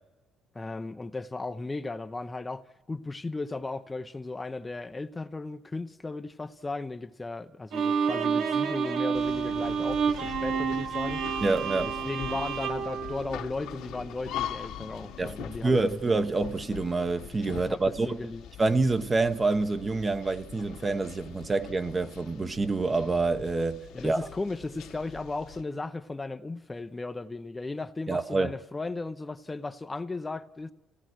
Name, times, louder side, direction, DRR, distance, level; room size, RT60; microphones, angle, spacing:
voice 1, 0.5-11.2 11.8-16.0 17.5-18.5 23.9-30.7, left 3 dB, 20° left, 0.7 m, -36 dB
Bowed string instrument, 7.7-14.0, right 6 dB, 65° right, 1.1 m, -29 dB
sound 1, 9.1-25.6, left 10 dB, 80° left, 1.8 m, -43 dB
voice 2, 11.4-11.9 15.2-15.3 15.6-18.2 18.6-24.2 28.1-28.5, right 3 dB, 25° right, 1.1 m, -27 dB
29.5 x 17.0 x 6.3 m
supercardioid pair, 75°, 0 cm